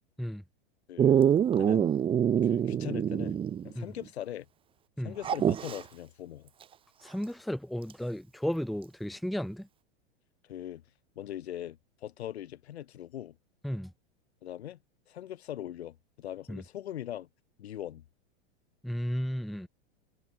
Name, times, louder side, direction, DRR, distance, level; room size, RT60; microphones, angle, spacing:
voice 1, 0.9-1.2 1.6-1.9 2.4-3.4 3.6-4.5 5.0-6.5 10.4-10.8 11.2-13.4 14.4-14.8 15.1-17.3 17.6-18.0, left 12 dB, 80° left, 2.0 m, -41 dB
Dog, 1.0-3.7 4.0-4.1 5.2-5.8 7.9-8.0, right 9 dB, 15° right, 0.5 m, -25 dB
voice 2, 7.0-9.7 13.6-13.9 16.5-16.6 18.8-19.7, equal, ahead, 0.9 m, -34 dB
hypercardioid pair, 105°, 32 cm